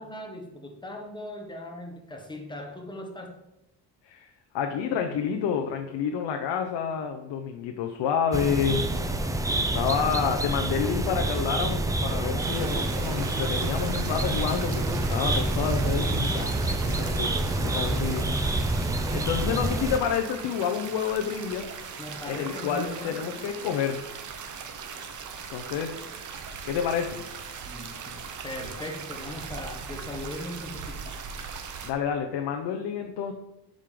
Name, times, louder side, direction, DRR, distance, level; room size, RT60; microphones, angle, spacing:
voice 1, 0.0-3.3 22.0-23.5 27.7-31.2, left 1 dB, 10° left, 2 dB, 1.2 m, -39 dB
voice 2, 4.0-8.8 9.6-18.3 19.1-21.7 22.3-24.0 25.5-26.0 26.6-27.2 31.8-33.3, left 7 dB, 80° left, 4 dB, 0.9 m, -29 dB
sound 1, 8.3-20.0, right 2 dB, 10° right, 0.4 m, -27 dB
sound 2, 12.4-31.9, right 6 dB, 45° right, 0.9 m, -40 dB
11.5 x 5.3 x 3.8 m, 0.91 s
cardioid pair, 165°, 41 cm